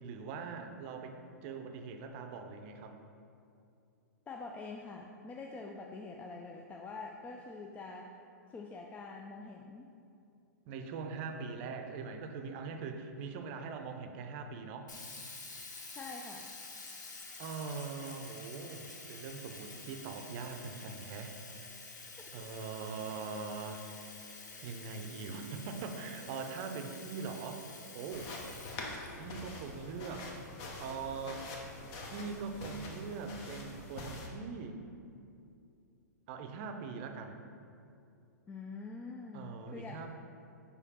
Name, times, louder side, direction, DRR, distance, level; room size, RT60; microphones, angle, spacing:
voice 1, 0.0-3.0 10.7-14.9 16.9-21.4 22.3-24.3 24.6-27.7 27.9-28.3 29.1-30.3 30.8-31.5 32.1-34.8 36.3-37.4 39.3-40.1, right 5 dB, 40° right, 6 dB, 0.6 m, -42 dB
voice 2, 4.3-8.1 8.5-9.9 15.9-16.5 22.2-22.3 22.7-22.9 38.5-40.1, left 3 dB, 15° left, 1 dB, 0.3 m, -45 dB
Sink (filling or washing), 14.9-29.6, left 3 dB, 80° left, 1.0 m, -49 dB
sound 1, 28.1-34.3, left 2 dB, 40° left, 0.9 m, -45 dB
5.0 x 4.9 x 4.2 m, 2.5 s
hypercardioid pair, 115°, 10 cm